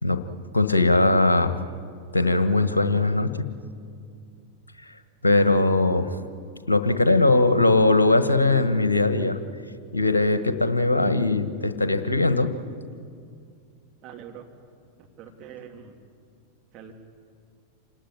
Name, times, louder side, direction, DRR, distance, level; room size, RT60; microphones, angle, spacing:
voice 1, 0.5-1.6 2.1-3.4 5.2-6.1 6.7-9.4 9.9-12.5, left 2 dB, 80° left, 10 dB, 1.5 m, -20 dB
voice 2, 14.0-14.5 15.0-16.0 16.7-16.9, right 8 dB, 35° right, 2 dB, 3.0 m, -44 dB
27.5 x 18.5 x 9.9 m, 2.3 s
figure-of-eight pair, 90°, 0 cm